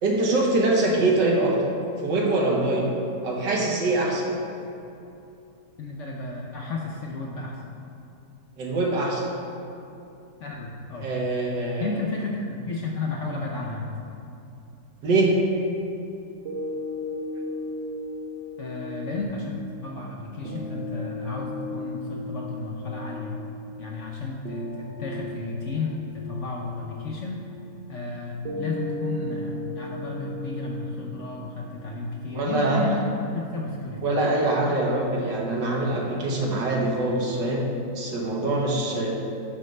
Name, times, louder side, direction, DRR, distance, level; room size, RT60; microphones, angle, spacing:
voice 1, 0.0-1.7 2.0-2.9 3.2-4.3 8.6-9.2 11.0-11.9 15.0-15.3 32.3-32.9 34.0-39.1, right 2 dB, 80° right, -1 dB, 1.8 m, -24 dB
voice 2, 5.8-7.6 10.4-11.1 11.8-13.9 18.6-23.4 23.8-27.4 27.9-33.0 33.3-34.0, left 3 dB, 60° left, -1 dB, 0.8 m, -33 dB
sound 1, 16.4-32.4, left 1 dB, 50° right, 0.8 m, -36 dB
11.5 x 5.3 x 3.2 m, 2.7 s
omnidirectional pair, 1.9 m